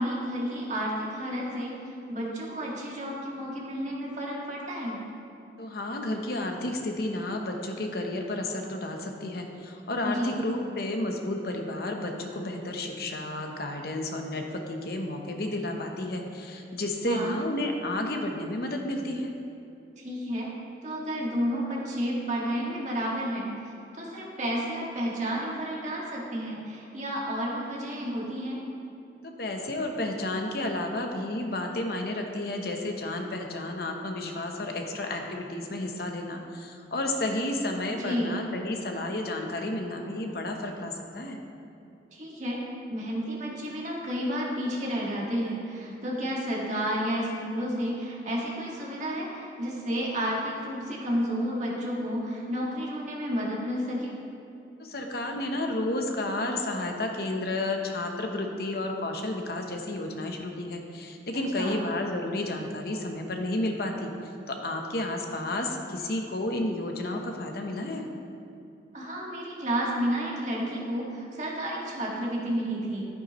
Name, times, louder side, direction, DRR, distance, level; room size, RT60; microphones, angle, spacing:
voice 1, 0.0-1.7 2.1-5.0 10.0-10.3 17.0-17.3 20.0-20.5 20.8-23.5 23.9-28.6 38.0-38.3 42.1-42.6 42.9-54.2 61.3-61.8 68.9-73.0, equal, 40° right, -4 dB, 1.8 m, -31 dB
voice 2, 5.6-19.3 29.2-41.4 54.8-64.1 64.5-68.1, left 1 dB, 60° left, 3 dB, 0.9 m, -31 dB
11.0 x 9.4 x 3.1 m, 2.7 s
head